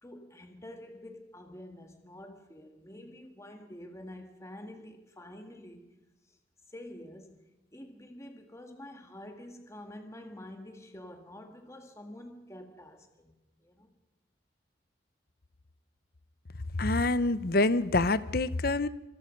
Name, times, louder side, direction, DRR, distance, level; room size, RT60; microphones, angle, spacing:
voice 1, 0.0-5.9 6.3-6.4 6.7-7.4 7.7-13.3 13.6-13.9, left 1 dB, 15° left, 5 dB, 1.8 m, -47 dB
voice 2, 16.8-18.9, left 2 dB, 50° left, 15 dB, 0.8 m, -26 dB
25.5 x 25.0 x 5.3 m, 1.0 s
head